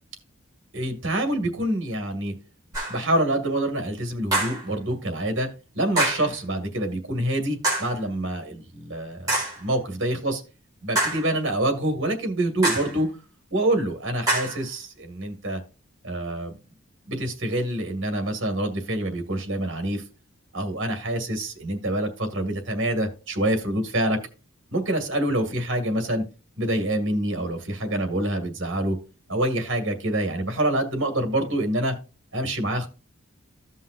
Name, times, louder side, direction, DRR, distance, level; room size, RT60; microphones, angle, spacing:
voice 1, 0.7-2.3 2.9-10.4 10.8-13.1 13.5-15.6 16.0-16.6 17.1-20.0 20.5-24.2 24.7-26.2 26.6-29.0 29.3-31.9 32.3-32.9, right 1 dB, 60° right, 5 dB, 2.1 m, -26 dB
sound 1, 2.7-3.1 4.3-4.7 6.0-6.3 7.6-8.0 9.3-9.6 11.0-11.3 12.6-13.0 14.3-14.6, right 1 dB, 20° right, 4.1 m, -25 dB
15.0 x 5.5 x 2.5 m, 0.32 s
head